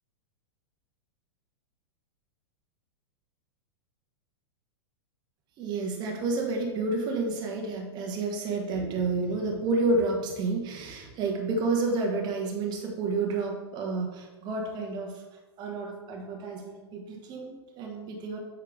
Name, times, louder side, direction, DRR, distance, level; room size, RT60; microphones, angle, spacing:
voice 1, 5.6-15.2 15.6-18.4, right 3 dB, 30° right, 0 dB, 1.2 m, -30 dB
8.3 x 3.6 x 3.7 m, 1.2 s
figure-of-eight pair, 100°, 14 cm